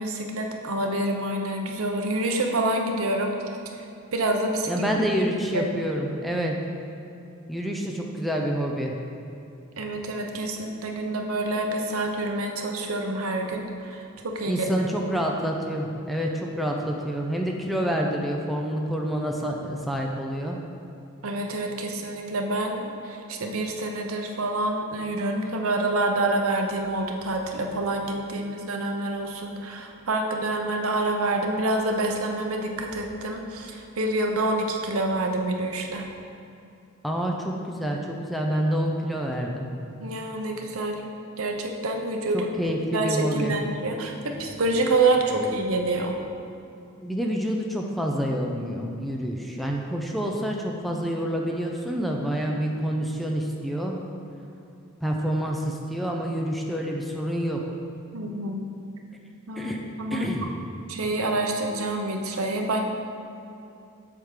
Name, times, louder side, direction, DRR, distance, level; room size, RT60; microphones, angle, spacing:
voice 1, 0.0-3.3 3.8-3.9 4.1-4.9 5.5-5.7 9.8-14.9 21.2-36.1 40.0-41.0 41.4-42.5 42.9-46.2 58.1-58.7 59.5-59.7 60.0-60.3 60.9-62.8, right 2 dB, 70° right, 3 dB, 0.8 m, -27 dB
voice 2, 4.7-6.6 7.5-8.9 14.5-20.6 37.0-39.7 42.3-43.5 47.0-54.0 55.0-57.6 59.6-59.8 60.1-60.5, equal, ahead, 0 dB, 0.5 m, -27 dB
7.7 x 3.6 x 6.5 m, 2.7 s
head